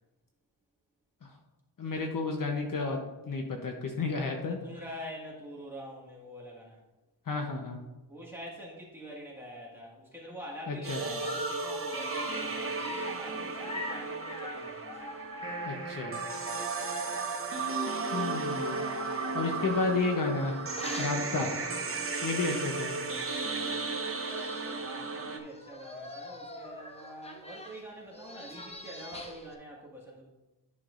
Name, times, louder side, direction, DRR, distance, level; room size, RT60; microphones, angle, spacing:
voice 1, 1.8-3.0 3.3-4.6 7.3-7.8 10.7-11.0 15.6-16.2 18.1-18.8 19.3-20.6 21.0-21.5 22.2-22.9, left 3 dB, 50° left, 2 dB, 0.9 m, -31 dB
voice 2, 4.6-6.8 8.1-14.8 23.3-23.9 24.8-30.2, equal, 5° right, -5 dB, 1.8 m, -45 dB
sound 1, 10.8-25.4, right 4 dB, 30° right, 0.8 m, -35 dB
Dog, 11.2-17.8 18.5-22.2 22.6-22.7 23.0-23.1 24.0-24.1 24.3-24.8 25.4-29.5, left 2 dB, 15° left, 0.6 m, -43 dB
10.5 x 5.8 x 2.5 m, 1.1 s
wide cardioid pair, 155°, 43 cm